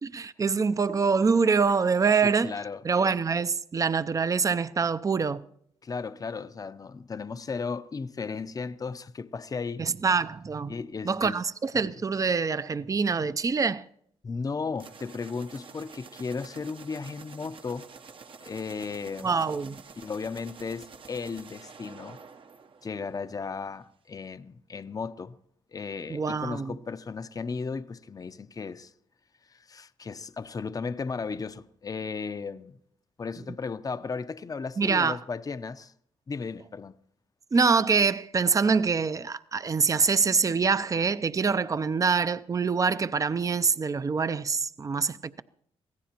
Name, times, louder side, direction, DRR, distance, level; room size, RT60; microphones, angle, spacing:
voice 1, 0.0-2.5 2.8-5.4 9.8-10.7 11.0-13.8 19.2-19.8 26.1-26.8 34.8-35.2 37.5-45.4, right 5 dB, 30° right, 0.5 m, -25 dB
voice 2, 2.2-2.8 5.8-9.9 10.7-11.4 11.8-11.9 14.2-17.9 18.4-19.5 20.0-22.2 22.8-25.4 25.7-28.9 29.5-32.8 33.2-35.9 36.3-37.0, left 4 dB, 35° left, 0.6 m, -35 dB
sound 1, 14.8-23.4, right 5 dB, 55° right, 0.9 m, -49 dB
25.5 x 17.0 x 3.0 m
cardioid pair, 70°, 11 cm